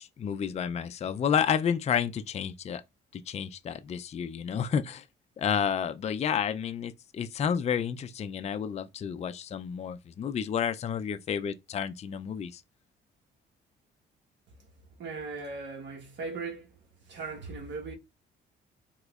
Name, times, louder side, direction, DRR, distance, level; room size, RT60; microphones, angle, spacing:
voice 1, 0.0-2.8 3.1-5.1 5.4-12.6, left 8 dB, 35° left, 0.4 m, -30 dB
voice 2, 15.0-16.7 17.1-17.9, right 4 dB, 65° right, 1.2 m, -38 dB
3.6 x 3.0 x 2.3 m
cardioid pair, 90°, 20 cm